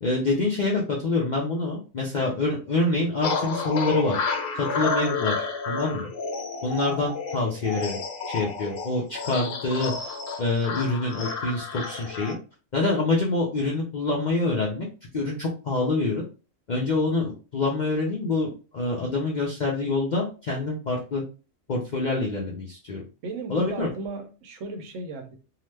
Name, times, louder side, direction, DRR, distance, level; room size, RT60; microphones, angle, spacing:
voice 1, 0.0-4.2 4.5-6.1 6.6-8.0 8.3-9.9 10.4-12.4 12.7-14.9 15.1-16.2 16.7-21.2 21.7-23.0 23.5-23.9, left 2 dB, 55° left, -3 dB, 0.5 m, -26 dB
sound 1, 3.2-12.3, left 4 dB, 75° left, 1.0 m, -31 dB
voice 2, 23.2-25.4, right 3 dB, 70° right, 6 dB, 0.9 m, -36 dB
2.8 x 2.0 x 3.2 m, 0.34 s
omnidirectional pair, 1.4 m